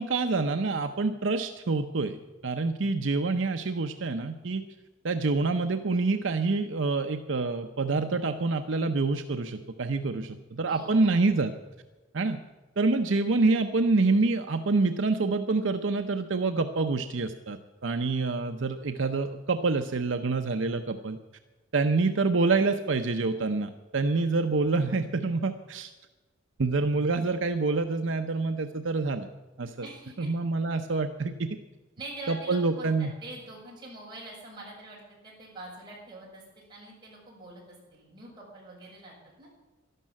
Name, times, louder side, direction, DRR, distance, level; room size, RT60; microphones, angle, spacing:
voice 1, 0.0-2.2 2.4-4.6 5.0-11.5 12.1-12.4 12.8-21.2 21.7-25.9 26.6-29.3 29.6-29.9 30.2-31.6 32.3-33.1, right 3 dB, 65° right, 6 dB, 0.7 m, -27 dB
voice 2, 10.7-11.3 29.8-30.3 32.0-37.6 37.9-39.5, right 2 dB, 20° right, -5 dB, 6.3 m, -44 dB
12.0 x 12.0 x 7.5 m, 1.2 s
head